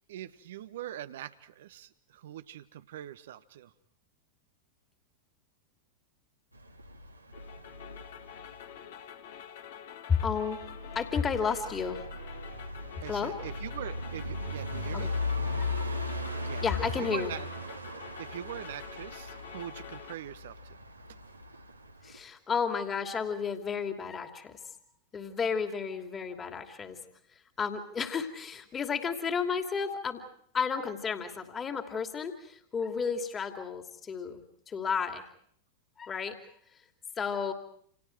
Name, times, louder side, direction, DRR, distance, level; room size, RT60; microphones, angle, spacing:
voice 1, 0.1-3.7 13.0-15.1 16.5-16.6 16.9-17.5 18.2-20.8 21.1-21.2, right 11 dB, 60° right, 12 dB, 1.2 m, -42 dB
sound 1, 6.6-8.7 10.4-22.2, left 2 dB, 85° right, 2.2 m, -38 dB
sound 2, 7.3-20.2, left 9 dB, 55° left, 2.1 m, -47 dB
voice 2, 10.1-10.6 10.9-12.0 13.1-13.3 14.9-15.1 15.7-15.9 16.6-17.3 22.0-24.6 25.1-27.0 27.6-30.2 30.5-35.3 36.0-36.4 37.2-37.5, left 6 dB, 20° left, 5 dB, 2.8 m, -32 dB
29.5 x 28.5 x 4.7 m, 0.66 s
figure-of-eight pair, 90°, 0 cm